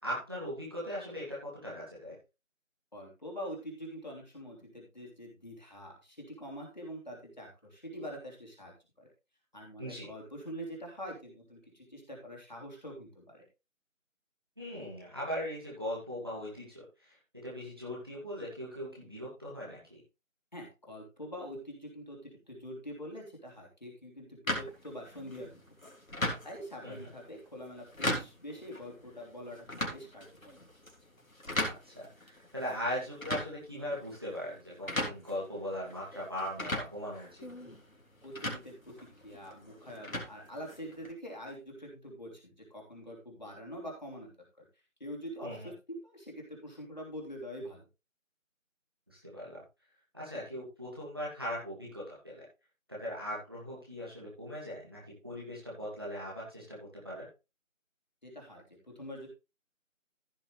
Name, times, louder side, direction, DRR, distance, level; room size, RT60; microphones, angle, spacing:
voice 1, 0.0-2.2 9.8-10.1 14.6-16.8 17.3-20.0 26.8-27.1 31.6-37.3 45.4-45.7 49.1-49.6 50.1-52.4 52.9-57.3, equal, 20° right, -6 dB, 2.4 m, -39 dB
voice 2, 2.9-9.1 9.5-13.5 20.5-25.9 26.4-30.4 38.2-38.9 39.2-44.3 44.6-44.7 45.0-47.9 58.2-59.3, equal, 35° left, -1 dB, 3.2 m, -45 dB
sound 1, 24.5-41.1, left 1 dB, 80° left, 3.5 m, -39 dB
15.0 x 6.1 x 3.3 m, 0.28 s
figure-of-eight pair, 175°, 40 cm